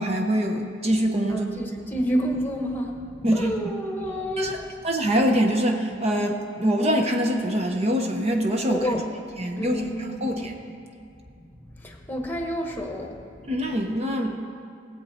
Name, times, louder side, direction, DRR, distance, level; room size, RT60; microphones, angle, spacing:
voice 1, 0.0-1.7 3.2-3.6 4.4-8.9 9.4-9.8 10.2-10.5 13.5-14.4, equal, 35° right, 3 dB, 0.8 m, -24 dB
voice 2, 1.3-4.7 8.7-9.0 9.6-10.8 11.4-13.8, equal, 10° left, 2 dB, 1.3 m, -30 dB
19.5 x 8.0 x 4.3 m, 2.4 s
head